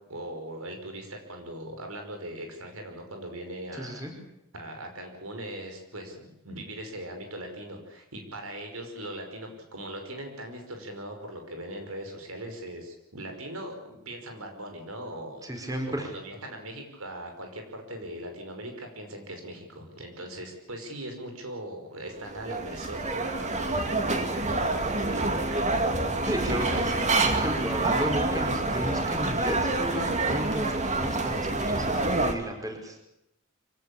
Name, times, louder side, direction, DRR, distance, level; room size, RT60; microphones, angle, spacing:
voice 1, 0.1-4.1 4.5-25.8, right 1 dB, 90° right, 4 dB, 5.5 m, -40 dB
voice 2, 3.7-4.1 15.4-16.1 26.3-33.0, right 1 dB, 15° right, 2 dB, 5.0 m, -33 dB
sound 1, 22.1-32.3, right 2 dB, 35° right, 2.5 m, -27 dB
25.0 x 17.0 x 8.7 m, 0.86 s
head